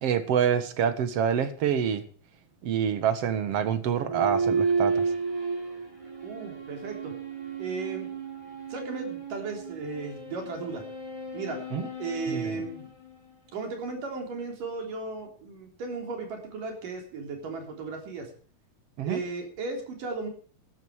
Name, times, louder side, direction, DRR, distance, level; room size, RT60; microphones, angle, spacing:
voice 1, 0.0-2.0 2.6-5.1 11.7-11.9 12.3-12.6 19.0-19.2, right 8 dB, 55° right, 11 dB, 2.2 m, -26 dB
sound 1, 4.0-13.7, right 4 dB, 10° right, 4.9 m, -33 dB
voice 2, 6.2-7.1 7.6-8.1 8.7-10.8 11.3-11.6 12.0-12.9 13.5-18.3 19.0-20.3, right 4 dB, 80° right, 3 dB, 5.1 m, -35 dB
14.5 x 13.0 x 4.8 m, 0.43 s
omnidirectional pair, 3.8 m